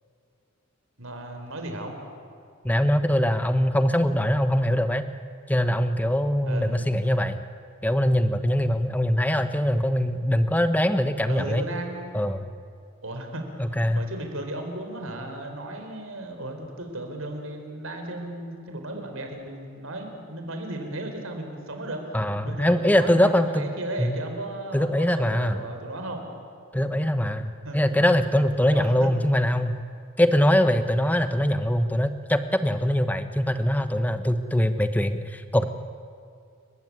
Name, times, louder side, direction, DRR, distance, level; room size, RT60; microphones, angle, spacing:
voice 1, 1.0-1.9 6.4-6.8 11.3-12.2 13.0-26.3 27.6-27.8 28.6-29.1, right 1 dB, 80° right, 4 dB, 4.2 m, -35 dB
voice 2, 2.6-5.0 5.5-7.4 7.8-11.6 12.1-12.4 13.6-14.0 22.1-23.6 24.0-24.1 24.7-25.6 26.7-29.7 30.2-35.6, equal, 10° left, 10 dB, 0.9 m, -22 dB
30.0 x 15.5 x 9.6 m, 2.4 s
head